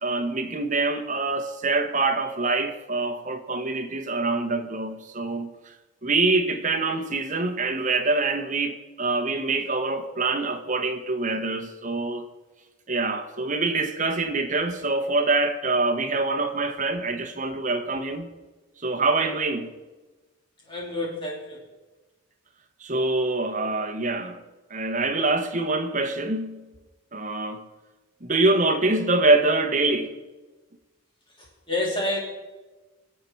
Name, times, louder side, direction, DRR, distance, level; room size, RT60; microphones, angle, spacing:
voice 1, 0.0-5.8 6.0-12.2 12.9-18.3 18.8-19.7 22.8-24.4 24.7-26.7 27.1-27.7 28.2-30.2, right 3 dB, 35° right, 1.2 m, -25 dB
voice 2, 20.6-21.6 31.4-32.2, left 1 dB, 25° left, 3.0 m, -29 dB
23.0 x 8.4 x 4.6 m
head